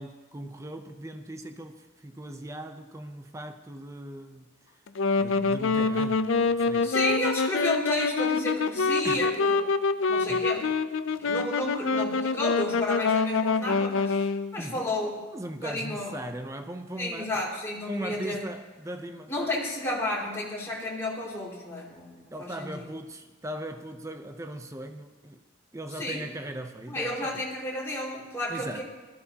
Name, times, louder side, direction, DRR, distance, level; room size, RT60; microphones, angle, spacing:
voice 1, 0.0-4.4 5.2-6.9 9.0-9.3 10.3-10.5 14.6-17.4 17.9-19.3 22.3-25.4 25.7-27.4 28.5-28.8, right 1 dB, 15° right, 0.7 m, -39 dB
Wind instrument woodwind instrument, 4.9-14.6, left 4 dB, 85° left, 0.5 m, -26 dB
voice 2, 6.8-9.6 10.1-10.6 11.2-15.1 15.6-16.1 17.0-18.4 19.3-22.8 26.0-26.2 26.9-28.8, left 1 dB, 15° left, 2.9 m, -32 dB
19.5 x 13.5 x 2.9 m
head